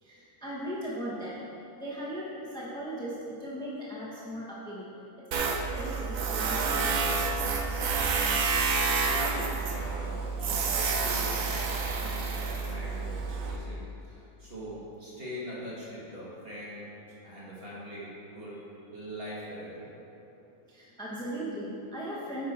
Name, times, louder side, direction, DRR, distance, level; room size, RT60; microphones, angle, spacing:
voice 1, 0.0-1.4 1.8-4.9 5.3-7.3 20.7-22.5, equal, 5° left, -7 dB, 1.1 m, -38 dB
Tools, 5.3-13.6, right 4 dB, 70° right, 1.2 m, -29 dB
voice 2, 8.9-19.9, equal, 40° right, -7 dB, 2.0 m, -42 dB
9.2 x 5.4 x 4.3 m, 2.9 s
omnidirectional pair, 1.5 m